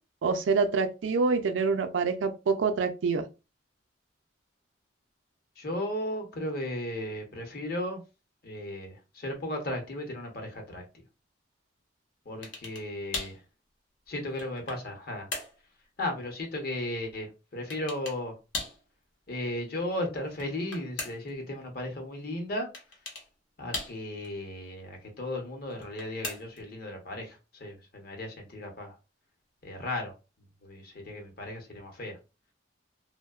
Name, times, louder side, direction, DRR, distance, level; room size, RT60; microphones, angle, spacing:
voice 1, 0.2-3.3, right 4 dB, 85° right, 0.4 m, -26 dB
voice 2, 5.6-8.0 8.4-10.8 12.3-13.3 14.1-15.3 16.0-18.3 19.3-22.7 23.6-28.9 29.6-30.1 30.6-32.2, left 1 dB, 55° left, 0.8 m, -35 dB
sound 1, 12.4-12.9 13.1-13.4 14.1-14.9 15.3-15.6 17.7-18.2 18.5-18.8 20.2-21.3 22.7-23.3 23.7-24.3 25.7-26.7, left 3 dB, 90° left, 0.8 m, -38 dB
2.7 x 2.1 x 2.3 m
head